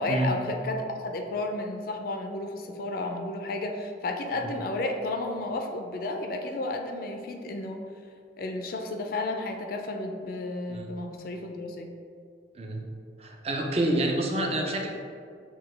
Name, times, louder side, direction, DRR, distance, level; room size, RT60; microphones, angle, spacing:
voice 1, 0.0-7.8 8.4-11.9, left 2 dB, 55° left, 3 dB, 0.4 m, -32 dB
voice 2, 13.2-14.9, right 1 dB, 35° right, 1 dB, 0.5 m, -27 dB
5.9 x 2.2 x 3.2 m, 2.2 s
head